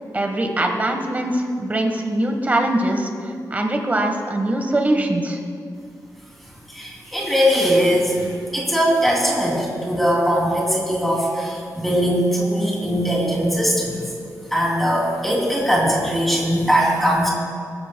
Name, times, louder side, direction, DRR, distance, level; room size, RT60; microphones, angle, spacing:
voice 1, 0.1-5.4, right 1 dB, 25° right, 3 dB, 1.3 m, -22 dB
voice 2, 6.7-14.0 14.5-17.3, equal, ahead, -4 dB, 2.8 m, -20 dB
19.0 x 14.5 x 2.2 m, 2.3 s
wide cardioid pair, 180°, 7 cm